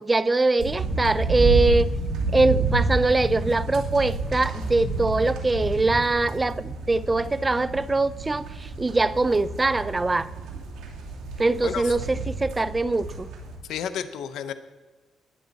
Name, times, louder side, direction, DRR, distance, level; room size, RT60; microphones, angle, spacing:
voice 1, 0.0-1.9 2.3-10.3 11.4-13.3, right 2 dB, 20° right, 0.5 m, -23 dB
sound 1, 0.6-13.6, right 3 dB, 85° right, 2.6 m, -29 dB
voice 2, 11.6-11.9 13.6-14.5, left 8 dB, 75° left, 0.7 m, -31 dB
19.5 x 8.3 x 4.1 m
cardioid pair, 90°, 0 cm